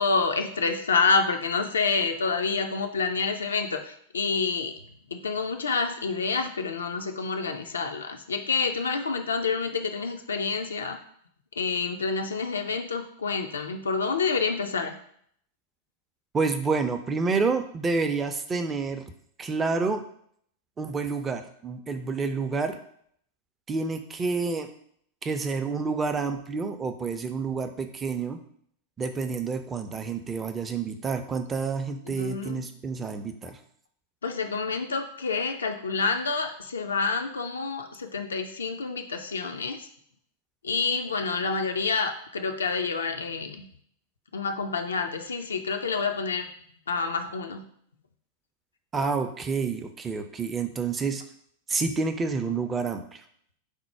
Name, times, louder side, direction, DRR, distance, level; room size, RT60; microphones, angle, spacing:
voice 1, 0.0-4.7 5.1-11.0 11.6-15.0 32.1-32.6 34.2-39.9 40.6-43.7 44.3-46.5 46.9-47.7, left 4 dB, 70° left, 5 dB, 0.3 m, -28 dB
voice 2, 16.3-19.1 19.4-20.0 20.8-22.8 23.7-24.7 25.2-28.4 29.0-33.6 48.9-51.2 51.7-53.2, right 4 dB, 20° right, 7 dB, 0.4 m, -29 dB
4.3 x 2.0 x 4.5 m, 0.65 s
figure-of-eight pair, 90°, 0 cm